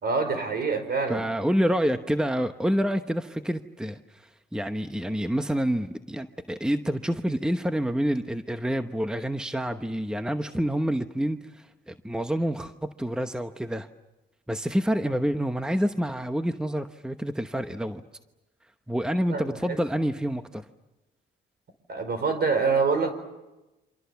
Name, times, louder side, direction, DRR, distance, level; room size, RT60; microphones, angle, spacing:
voice 1, 0.0-1.2 19.3-19.8 21.9-23.1, right 4 dB, 55° right, 9 dB, 4.9 m, -26 dB
voice 2, 1.1-12.7 13.0-13.9 14.5-18.0 18.9-20.6, equal, 5° right, 8 dB, 1.0 m, -28 dB
28.5 x 26.0 x 7.1 m, 1.0 s
cardioid pair, 90°, 20 cm